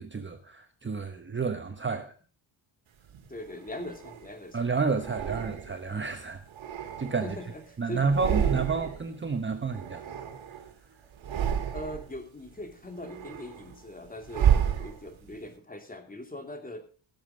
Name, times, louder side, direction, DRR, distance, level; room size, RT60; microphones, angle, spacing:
voice 1, 0.0-2.1 4.5-6.4 7.0-7.4 7.8-10.2, right 4 dB, 25° right, 7 dB, 1.1 m, -30 dB
sound 1, 3.1-4.3 5.0-5.9 6.4-7.6 8.0-9.1 9.3-10.7 11.1-12.2 12.6-15.4, right 8 dB, 70° right, 2.2 m, -30 dB
voice 2, 3.3-4.6 7.2-7.6 7.9-8.1 11.7-16.8, left 1 dB, 15° left, 5 dB, 2.6 m, -41 dB
17.0 x 7.4 x 5.0 m, 0.39 s
cardioid pair, 105°, 48 cm